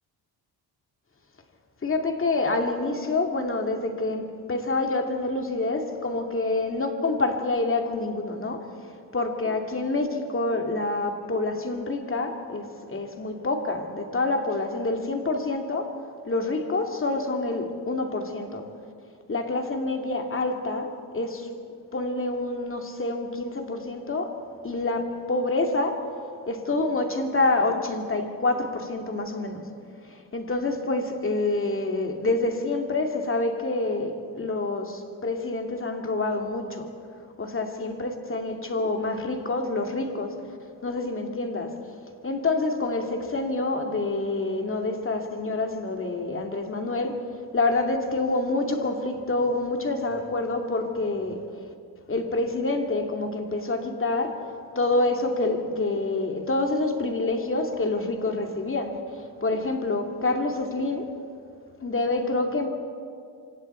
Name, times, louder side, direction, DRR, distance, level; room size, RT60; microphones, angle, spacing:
voice 1, 1.8-16.0 16.3-18.6 19.3-21.5 21.9-24.4 24.6-26.1 26.5-29.6 30.1-36.9 37.4-40.4 40.8-41.8 42.2-47.2 47.5-51.4 52.1-54.4 54.8-61.1 61.8-62.7, left 2 dB, 30° left, 3 dB, 2.4 m, -27 dB
27.5 x 26.0 x 4.5 m, 2.3 s
cardioid pair, 120°, 40 cm